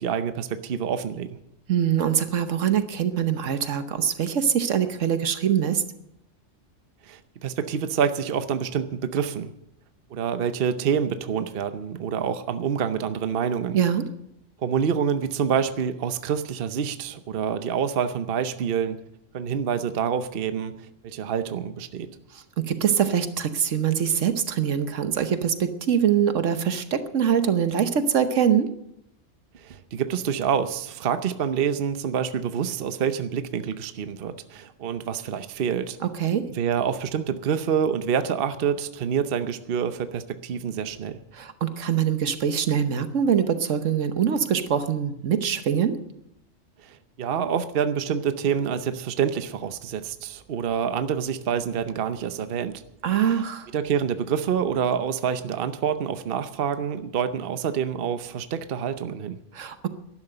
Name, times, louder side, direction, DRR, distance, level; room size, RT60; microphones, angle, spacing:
voice 1, 0.0-1.4 7.0-9.5 10.1-13.8 14.6-19.0 19.3-22.1 29.5-36.0 36.5-41.2 46.8-52.8 53.7-59.4, right 7 dB, 50° right, 11 dB, 0.9 m, -27 dB
voice 2, 1.7-5.8 13.7-14.1 22.3-28.7 36.1-36.5 41.3-46.0 53.0-53.7 59.5-59.9, right 8 dB, 75° right, 10 dB, 1.3 m, -23 dB
12.5 x 11.0 x 7.8 m, 0.82 s
omnidirectional pair, 1.3 m